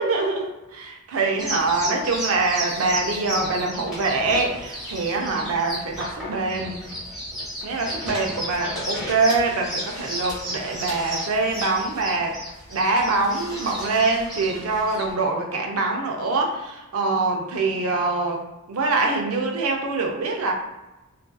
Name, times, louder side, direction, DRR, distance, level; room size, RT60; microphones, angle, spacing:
voice 1, 0.0-6.7 7.6-12.4 12.7-18.4 18.7-20.5, right 3 dB, 70° right, 1 dB, 0.5 m, -24 dB
sound 1, 1.4-15.1, equal, ahead, 1.1 m, -33 dB
2.6 x 2.4 x 2.2 m, 1.0 s
head